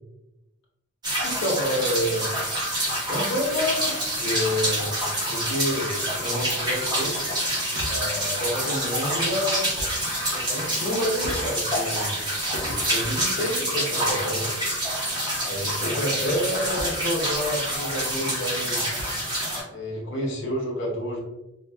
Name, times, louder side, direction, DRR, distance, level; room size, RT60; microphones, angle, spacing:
sound 1, 1.0-19.6, right 1 dB, 20° right, 0.9 m, -27 dB
voice 1, 1.2-2.2 3.1-4.9 5.3-5.9 6.2-7.2 7.9-9.7 10.3-12.1 12.9-14.5 15.4-18.8 19.7-21.2, equal, 60° left, -4 dB, 0.9 m, -28 dB
sound 2, 7.7-8.2 9.6-10.1 10.6-11.8 12.1-13.4 14.1-14.7 14.9-16.0 16.8-17.0 17.2-17.3 17.8-19.3, equal, 70° right, 0.6 m, -39 dB
4.3 x 2.3 x 2.2 m, 0.94 s
head